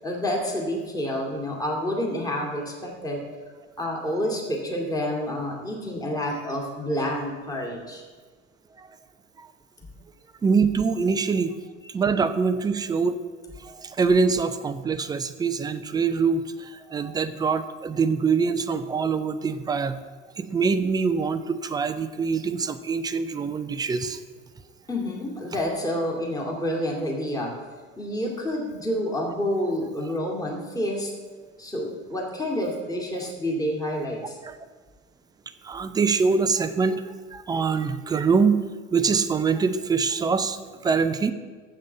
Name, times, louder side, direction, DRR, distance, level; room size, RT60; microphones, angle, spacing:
voice 1, 0.0-3.2 3.8-8.0 24.9-27.5 28.0-31.1 31.6-34.4, left 1 dB, 10° left, -1 dB, 2.2 m, -28 dB
voice 2, 10.4-11.6 11.9-13.2 13.6-20.0 20.4-24.2 34.4-34.6 35.6-38.6 38.9-41.3, right 5 dB, 10° right, 11 dB, 0.4 m, -24 dB
7.5 x 7.4 x 6.6 m, 1.4 s
figure-of-eight pair, 75°, 39 cm